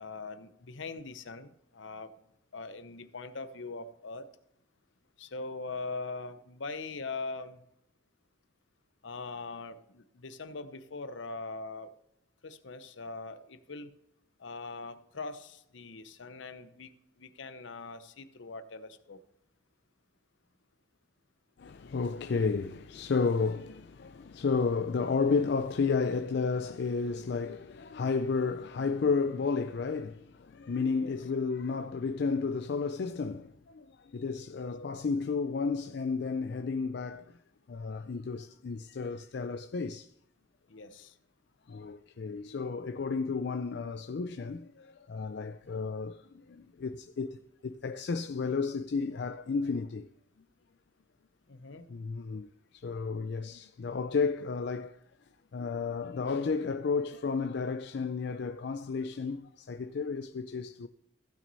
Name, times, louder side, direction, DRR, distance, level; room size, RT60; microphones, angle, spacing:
voice 1, 0.0-2.1 2.5-4.3 5.2-7.6 9.0-11.9 12.4-13.9 14.4-16.9 17.2-19.2 31.0-31.1 34.6-34.7 40.7-41.1 51.5-51.9, left 3 dB, 75° left, 0.8 m, -41 dB
voice 2, 21.6-37.4 37.7-40.1 41.7-50.1 51.9-55.0 55.5-60.9, left 4 dB, 55° left, 0.4 m, -32 dB
15.5 x 6.2 x 4.1 m
head